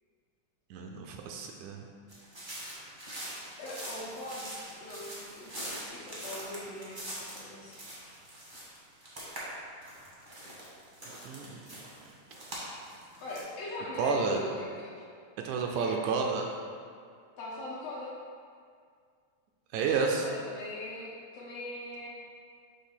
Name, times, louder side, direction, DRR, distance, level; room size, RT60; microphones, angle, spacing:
voice 1, 0.7-1.9 11.2-12.1 14.0-14.4 15.4-16.5 19.7-20.3, right 4 dB, 80° right, 2 dB, 1.8 m, -31 dB
sound 1, 2.1-9.4 9.7-13.4, right 1 dB, 35° right, 0.7 m, -43 dB
voice 2, 3.6-8.0 13.2-15.1 15.8-16.0 17.4-18.1 20.2-22.1, left 1 dB, 65° left, -6 dB, 1.8 m, -41 dB
6.3 x 3.3 x 5.7 m, 2.1 s
omnidirectional pair, 3.5 m